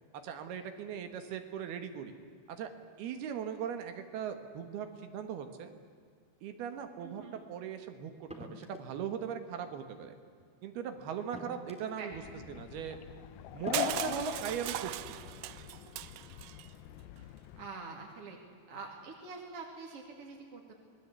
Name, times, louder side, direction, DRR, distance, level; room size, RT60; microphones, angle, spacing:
voice 1, 0.2-2.1 2.5-2.7 3.0-5.7 6.4-7.2 7.5-10.2 10.6-12.2 12.6-13.0 13.5-15.2, right 8 dB, 70° right, 7 dB, 3.4 m, -39 dB
voice 2, 7.0-7.4 12.0-12.4 13.9-14.0 17.6-18.4 18.7-20.7, right 4 dB, 40° right, 0 dB, 2.9 m, -46 dB
sound 1, 8.3-8.9 10.4-10.5 11.3-12.0 13.0-13.1 13.7-14.1, equal, ahead, 1.6 m, -47 dB
sound 2, 12.1-17.7, left 12 dB, 75° left, 2.4 m, -42 dB
Crushing, 13.7-16.7, right 15 dB, 85° right, 2.9 m, -39 dB
26.5 x 20.0 x 8.3 m, 2.2 s
omnidirectional pair, 4.8 m